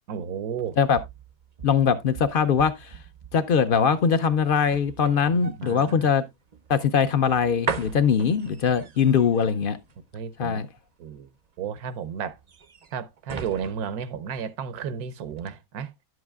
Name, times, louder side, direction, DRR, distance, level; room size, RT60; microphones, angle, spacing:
voice 1, 0.1-0.8 5.2-6.1 10.1-10.7 11.0-11.3 11.6-12.4 12.9-15.9, right 7 dB, 90° right, 1.2 m, -33 dB
sound 1, 0.6-14.9 15.3-15.5, right 5 dB, 60° right, 0.4 m, -40 dB
voice 2, 1.6-2.9 3.3-6.2 6.7-9.8 10.4-10.7, left 7 dB, 65° left, 0.5 m, -22 dB
11.0 x 7.9 x 2.3 m
omnidirectional pair, 1.5 m